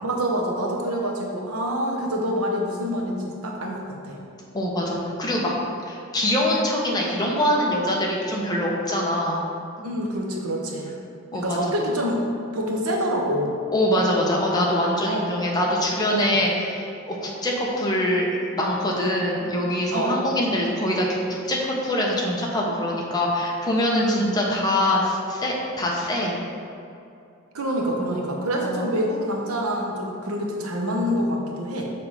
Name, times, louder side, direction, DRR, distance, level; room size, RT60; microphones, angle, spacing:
voice 1, 0.0-4.2 9.8-10.9 11.3-12.2 12.5-13.5 15.1-15.3 16.1-16.4 19.9-20.2 24.0-24.4 27.5-31.8, equal, 90° right, 0 dB, 1.0 m, -26 dB
voice 2, 4.5-5.5 5.9-9.5 9.8-9.9 11.3-11.7 13.7-26.4 28.6-28.8, left 1 dB, 20° left, -3 dB, 0.9 m, -24 dB
6.7 x 3.4 x 5.5 m, 2.5 s
head